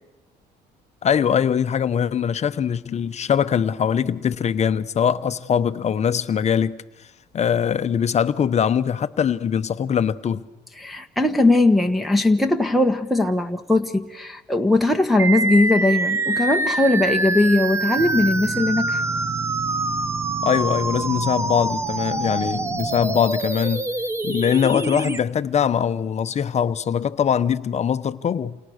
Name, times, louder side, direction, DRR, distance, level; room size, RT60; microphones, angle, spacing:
voice 1, 1.0-6.8 7.3-10.4 20.4-23.9 24.2-28.6, left 8 dB, 40° left, 1.0 m, -22 dB
voice 2, 10.8-19.0, left 2 dB, ahead, 1.5 m, -19 dB
sound 1, 15.2-25.2, right 2 dB, 15° right, 1.0 m, -25 dB
sound 2, 18.0-23.2, right 6 dB, 40° right, 1.2 m, -34 dB
28.5 x 28.5 x 6.6 m
cardioid pair, 110°, 17 cm